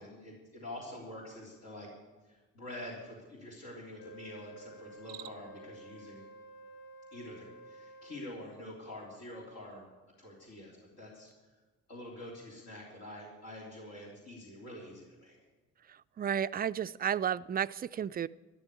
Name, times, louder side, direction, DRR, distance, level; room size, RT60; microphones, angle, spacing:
voice 1, 0.0-1.9 2.2-6.2 7.1-9.9 10.2-11.3 11.9-15.4, left 1 dB, 65° left, -4 dB, 3.5 m, -46 dB
Wind instrument woodwind instrument, 4.0-8.3, right 2 dB, 85° left, 1.3 m, -52 dB
Cricket, 4.9-5.7, right 15 dB, 85° right, 0.5 m, -50 dB
voice 2, 16.2-18.3, right 9 dB, 25° right, 16 dB, 0.4 m, -32 dB
13.0 x 11.5 x 8.3 m, 1.2 s
figure-of-eight pair, 40°, 38 cm